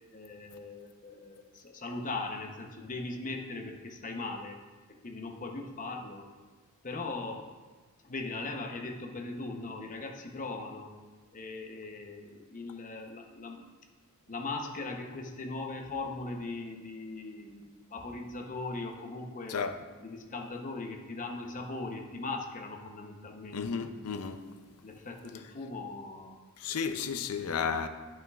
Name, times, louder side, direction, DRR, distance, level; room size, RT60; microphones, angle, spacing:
voice 1, 0.1-4.6 5.0-6.3 6.8-7.5 8.0-10.9 11.3-13.7 14.3-19.6 20.0-23.6 24.8-26.4, left 3 dB, 35° left, 0.8 m, -39 dB
voice 2, 23.5-24.5 26.6-27.9, left 6 dB, 85° left, 0.5 m, -33 dB
11.0 x 6.4 x 2.4 m
head